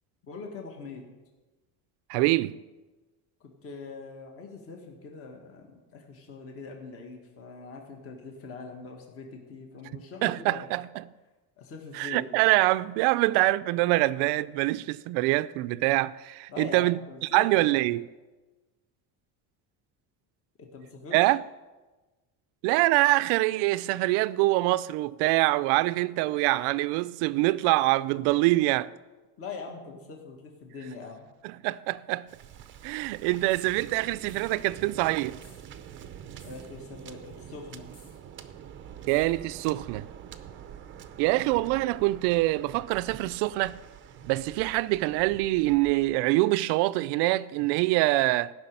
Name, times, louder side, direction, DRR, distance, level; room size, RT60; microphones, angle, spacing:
voice 1, 0.2-1.0 3.4-10.7 11.6-12.3 16.5-17.8 20.6-21.3 29.4-31.3 36.4-37.9, left 4 dB, 30° left, 1.8 m, -43 dB
voice 2, 2.1-2.6 10.2-11.0 11.9-17.0 17.3-18.1 21.1-21.4 22.6-28.9 31.4-32.3 32.8-35.4 39.1-40.0 41.2-43.8 44.3-48.5, right 19 dB, 70° right, 0.6 m, -25 dB
Waves surf, 32.3-46.2, right 9 dB, 30° right, 0.7 m, -46 dB
sound 1, 33.5-33.8 34.3-34.7 35.4-35.7 36.4-36.8 37.9-38.2 39.1-39.4, left 2 dB, 10° left, 2.3 m, -57 dB
16.0 x 6.2 x 8.9 m
cardioid pair, 180°, 42 cm